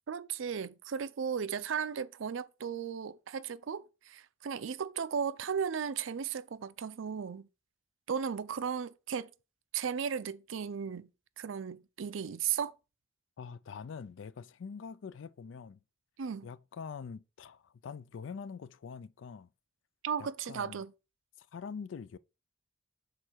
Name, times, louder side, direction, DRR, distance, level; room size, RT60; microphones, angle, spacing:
voice 1, 0.1-7.4 8.1-9.3 9.7-11.1 11.4-12.7 16.2-16.5 20.0-20.9, right 7 dB, 80° right, 0.5 m, -35 dB
voice 2, 13.4-15.8 16.4-19.5 20.2-20.8 21.4-22.2, left 6 dB, 75° left, 0.4 m, -44 dB
6.7 x 4.3 x 4.5 m
head